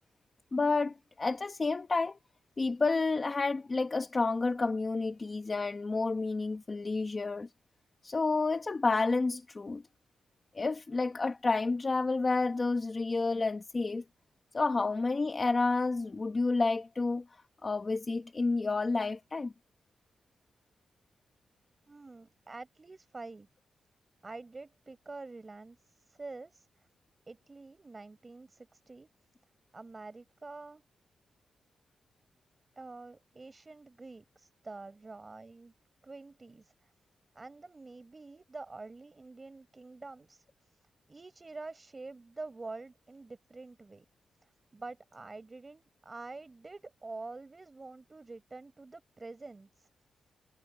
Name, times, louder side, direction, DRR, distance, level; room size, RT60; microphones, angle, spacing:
voice 1, 0.5-2.2 2.6-7.5 8.0-9.8 10.5-14.0 14.5-17.2 17.6-19.5, left 3 dB, 25° left, 1.0 m, -30 dB
voice 2, 21.9-23.5 24.2-26.9 27.3-29.1 29.7-30.8 32.8-35.7 36.0-36.9 37.3-40.4 41.1-44.1 44.4-49.9, right 3 dB, 20° right, 6.0 m, -47 dB
wide cardioid pair, 165°, 0 cm